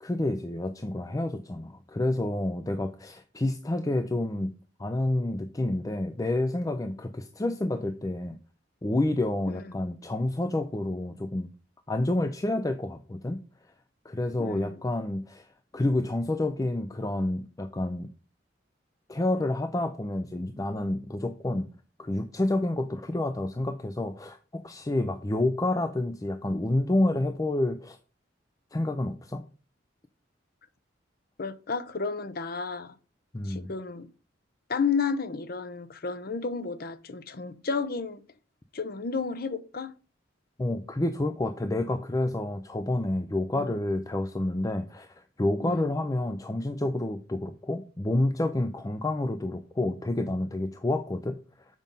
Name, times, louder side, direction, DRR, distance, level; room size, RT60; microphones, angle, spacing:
voice 1, 0.0-4.5 4.8-8.4 8.8-11.5 11.9-13.4 14.0-15.5 15.7-18.1 19.1-21.7 22.0-28.0 28.7-29.4 33.3-33.7 40.6-51.4, left 1 dB, 20° left, 0.5 m, -29 dB
voice 2, 9.5-9.8 14.4-14.8 31.4-32.9 33.4-34.1 34.7-38.2 38.7-39.9 43.6-43.8 45.6-45.9, left 5 dB, 55° left, 0.7 m, -32 dB
7.4 x 5.3 x 5.4 m
head